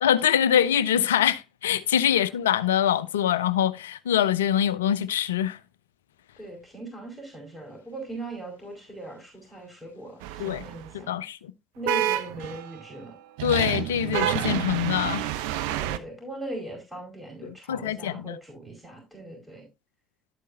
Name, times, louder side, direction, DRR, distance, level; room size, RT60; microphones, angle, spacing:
voice 1, 0.0-5.6 10.4-10.7 10.9-11.4 13.4-15.3 17.4-18.4, left 10 dB, 80° left, 0.4 m, -24 dB
voice 2, 6.4-11.1 11.7-13.1 15.7-19.7, right 1 dB, 5° right, 4.9 m, -39 dB
sound 1, 10.2-10.9 11.9-12.8 13.4-16.0, right 13 dB, 70° right, 0.6 m, -29 dB
11.5 x 8.3 x 2.6 m
figure-of-eight pair, 55°, 0 cm